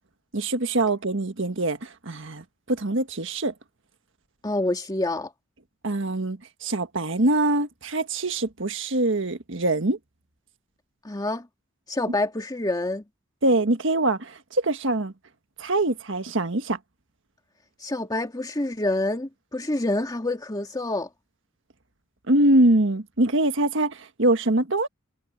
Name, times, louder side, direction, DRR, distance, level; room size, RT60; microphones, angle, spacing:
voice 1, 0.3-3.5 5.8-10.0 13.4-15.1 15.6-16.8 22.3-24.9, right 2 dB, 70° right, 1.6 m, -23 dB
voice 2, 4.4-5.3 11.0-11.5 11.9-13.0 17.8-21.1, left 2 dB, 20° left, 1.9 m, -27 dB
head